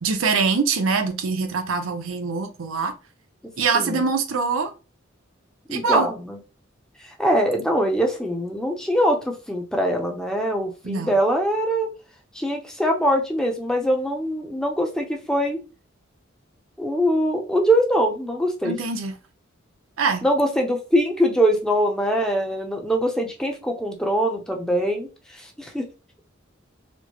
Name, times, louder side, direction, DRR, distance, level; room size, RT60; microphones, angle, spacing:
voice 1, 0.0-2.9 3.6-4.7 5.7-6.1 10.8-11.2 18.6-19.1 20.0-20.3, right 4 dB, 85° right, 0.6 m, -23 dB
voice 2, 3.7-4.1 5.7-6.4 7.2-11.9 12.3-15.6 16.8-18.8 20.2-25.1 25.6-25.8, equal, 5° left, 0.6 m, -22 dB
4.3 x 2.1 x 3.0 m
head